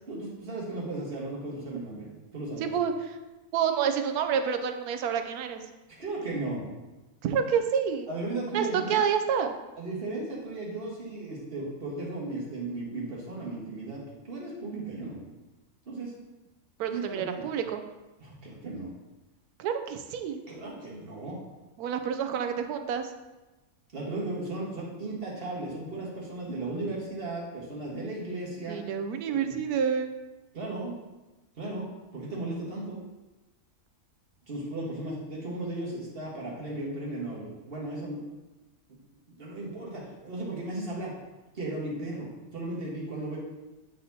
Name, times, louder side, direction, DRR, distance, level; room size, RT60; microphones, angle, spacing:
voice 1, 0.1-2.7 6.0-6.6 8.1-8.9 9.8-15.2 15.8-16.1 16.9-17.5 18.2-18.9 20.5-21.4 23.9-28.8 29.3-29.6 30.5-31.0 31.6-33.0 34.5-38.2 39.3-41.1 41.5-43.4, right 2 dB, 40° right, -4 dB, 1.5 m, -36 dB
voice 2, 2.6-2.9 3.5-5.6 7.2-8.1 8.5-9.5 16.8-17.8 19.6-20.4 21.8-23.1 28.7-30.1, right 7 dB, 85° right, 7 dB, 1.1 m, -28 dB
8.4 x 4.1 x 2.7 m, 1.1 s
omnidirectional pair, 1.6 m